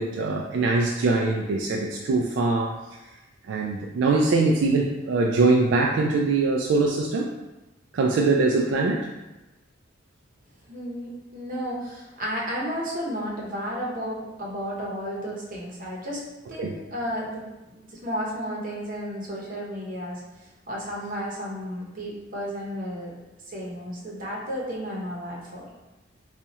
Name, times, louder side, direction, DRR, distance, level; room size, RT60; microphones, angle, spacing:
voice 1, 0.0-2.7 3.5-7.3 7.9-9.1 16.6-16.8, right 3 dB, 80° right, 0 dB, 0.3 m, -22 dB
voice 2, 10.7-16.2 16.5-17.4 17.7-20.2 20.7-23.1 23.5-25.7, equal, 45° right, -4 dB, 0.9 m, -33 dB
4.0 x 2.4 x 2.8 m, 1.0 s
head